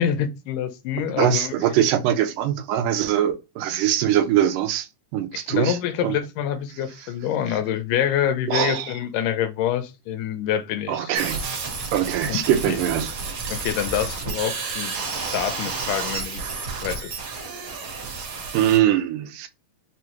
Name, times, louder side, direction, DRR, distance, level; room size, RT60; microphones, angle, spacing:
voice 1, 0.0-1.6 5.3-11.1 12.3-12.4 12.7-12.8 13.5-16.4 16.8-17.2, left 9 dB, 80° left, 2.1 m, -26 dB
voice 2, 1.2-4.9 5.1-5.8 6.0-6.1 8.5-8.9 10.9-13.1 18.5-19.5, right 10 dB, 85° right, 2.1 m, -22 dB
sound 1, 11.1-18.8, right 4 dB, 55° right, 1.5 m, -31 dB
5.5 x 2.4 x 2.9 m
omnidirectional pair, 3.8 m